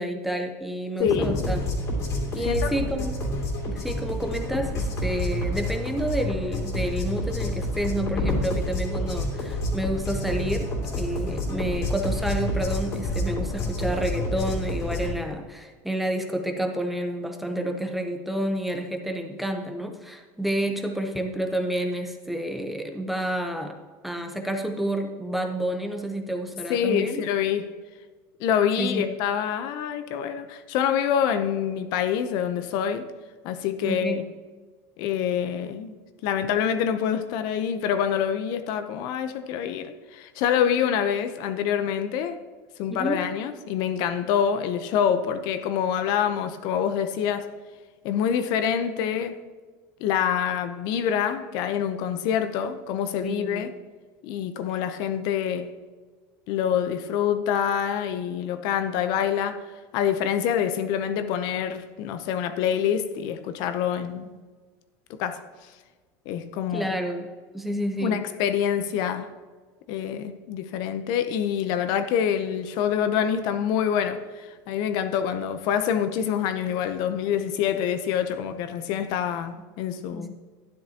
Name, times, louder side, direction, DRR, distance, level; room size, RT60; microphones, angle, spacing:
voice 1, 0.0-1.6 2.3-3.2 3.7-10.7 11.0-23.8 24.0-27.2 28.8-29.0 33.8-34.2 42.9-43.2 53.2-53.7 66.7-67.3 67.5-68.3 80.1-80.3, right 1 dB, ahead, 0.8 m, -29 dB
voice 2, 1.0-1.4 2.4-2.7 26.7-27.7 28.4-33.1 33.4-34.2 35.0-35.9 36.2-42.4 42.8-47.5 48.0-49.4 50.0-53.7 54.2-55.7 56.5-64.3 65.1-65.7 66.3-67.0 68.0-69.3 69.9-80.3, left 8 dB, 60° left, 0.7 m, -26 dB
sound 1, 1.0-15.1, left 1 dB, 40° left, 2.5 m, -28 dB
12.0 x 10.0 x 2.9 m
cardioid pair, 150°, 8 cm